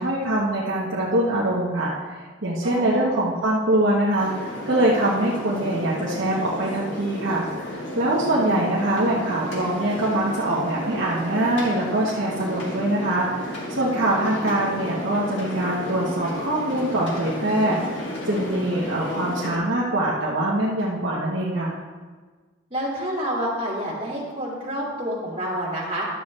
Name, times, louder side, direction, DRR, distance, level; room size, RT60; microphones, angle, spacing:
voice 1, 0.0-21.8, right 1 dB, 65° right, -6 dB, 1.2 m, -24 dB
voice 2, 2.6-3.3 8.3-8.7 22.7-26.1, equal, 25° right, -7 dB, 2.5 m, -29 dB
sound 1, 4.2-19.6, left 1 dB, 65° left, 2.0 m, -33 dB
11.5 x 7.4 x 3.2 m, 1.4 s
head